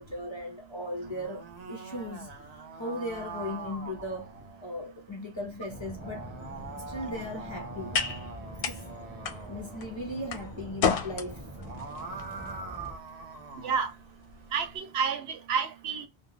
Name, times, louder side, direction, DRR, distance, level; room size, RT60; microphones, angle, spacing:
voice 1, 0.0-2.3 2.8-4.3 4.6-6.3 6.8-8.0 8.7-8.8 9.5-11.4, left 1 dB, 35° left, 0.5 m, -37 dB
sound 1, 0.9-4.8 5.8-10.0 11.4-13.9, right 4 dB, 50° right, 0.6 m, -43 dB
sound 2, 5.7-13.0, equal, 10° right, 0.8 m, -45 dB
sound 3, 6.4-14.8, left 6 dB, 65° left, 0.7 m, -36 dB
voice 2, 14.5-16.1, right 6 dB, 80° right, 0.9 m, -29 dB
2.3 x 2.2 x 3.1 m
omnidirectional pair, 1.0 m